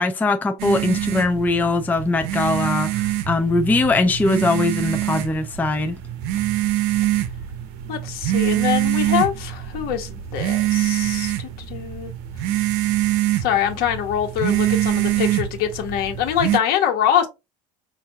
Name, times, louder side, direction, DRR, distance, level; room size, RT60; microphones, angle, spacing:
voice 1, 0.0-6.0, left 2 dB, 10° left, 0.4 m, -21 dB
sound 1, 0.6-16.6, right 14 dB, 65° right, 0.7 m, -24 dB
voice 2, 7.9-12.1 13.4-17.3, left 9 dB, 60° left, 1.2 m, -24 dB
5.3 x 2.5 x 2.8 m
supercardioid pair, 95°, 17 cm